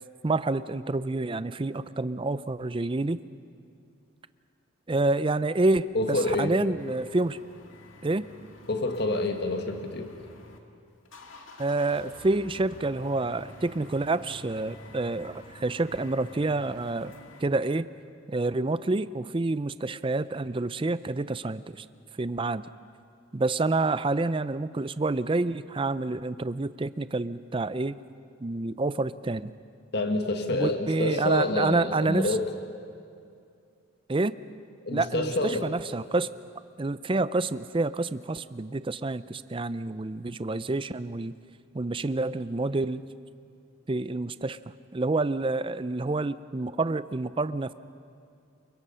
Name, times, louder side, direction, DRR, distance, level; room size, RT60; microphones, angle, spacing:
voice 1, 0.2-3.2 4.9-7.4 8.0-8.3 11.6-17.1 17.4-17.8 18.3-21.9 22.2-22.7 23.3-28.0 28.4-29.5 30.5-32.4 34.1-34.4 34.9-36.3 36.8-41.4 41.7-43.0 43.9-44.6 44.9-47.7, right 2 dB, 25° right, 15 dB, 0.5 m, -28 dB
voice 2, 5.9-6.5 8.7-10.1 29.9-32.5 34.8-35.7, left 2 dB, 55° left, 5 dB, 1.6 m, -27 dB
sound 1, 6.8-10.6 10.9-17.4, left 2 dB, 70° left, 2.1 m, -49 dB
29.0 x 24.0 x 5.6 m, 2.4 s
head